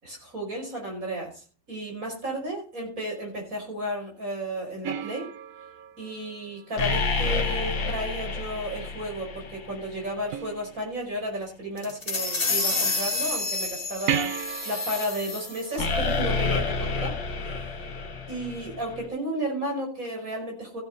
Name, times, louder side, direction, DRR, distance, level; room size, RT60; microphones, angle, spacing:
voice 1, 0.0-5.3 6.0-14.3 14.6-17.8 18.3-20.8, right 1 dB, 45° right, 0 dB, 5.8 m, -33 dB
sound 1, 4.8-7.5 10.3-11.3 14.1-17.0 20.0-20.1, right 9 dB, 60° right, 0.9 m, -35 dB
sound 2, 6.8-10.0 15.8-19.1, left 3 dB, 80° left, 2.0 m, -29 dB
sound 3, 11.8-15.8, left 3 dB, 30° left, 2.0 m, -29 dB
16.0 x 8.7 x 4.1 m, 0.35 s
omnidirectional pair, 2.0 m